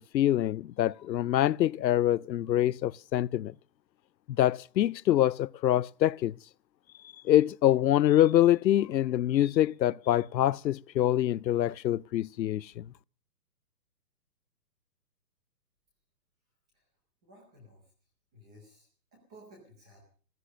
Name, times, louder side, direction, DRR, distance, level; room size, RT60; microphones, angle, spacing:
voice 1, 0.1-3.5 4.4-6.3 7.2-12.8, left 12 dB, 90° left, 0.6 m, -25 dB
voice 2, 17.2-17.8 18.3-18.9 19.1-20.0, equal, 5° right, 0.6 m, -55 dB
15.0 x 12.5 x 6.3 m
hypercardioid pair, 160°, 50 cm